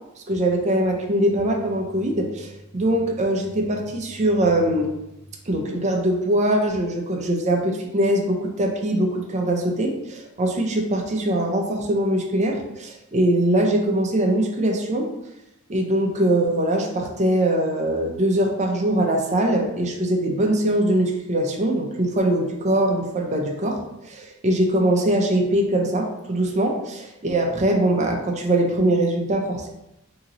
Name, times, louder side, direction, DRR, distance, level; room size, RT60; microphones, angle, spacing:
voice 1, 0.3-4.9 5.5-15.1 15.7-23.8 24.1-29.7, right 1 dB, 35° right, 2 dB, 0.5 m, -22 dB
2.9 x 2.8 x 3.8 m, 0.89 s
head